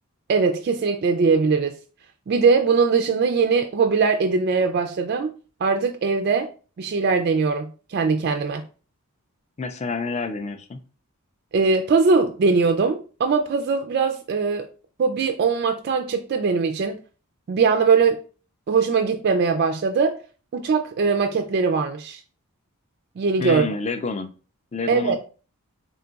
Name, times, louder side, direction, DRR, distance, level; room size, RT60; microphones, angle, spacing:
voice 1, 0.3-1.8 2.3-5.3 5.6-6.5 6.8-8.6 11.5-14.7 15.0-17.0 17.5-18.2 18.7-20.2 20.5-22.2 23.2-23.7 24.9-25.2, right 4 dB, 45° right, 0.3 m, -21 dB
voice 2, 9.6-10.8 23.4-24.3 24.7-25.2, left 4 dB, 30° left, 0.4 m, -28 dB
3.6 x 2.3 x 3.8 m
head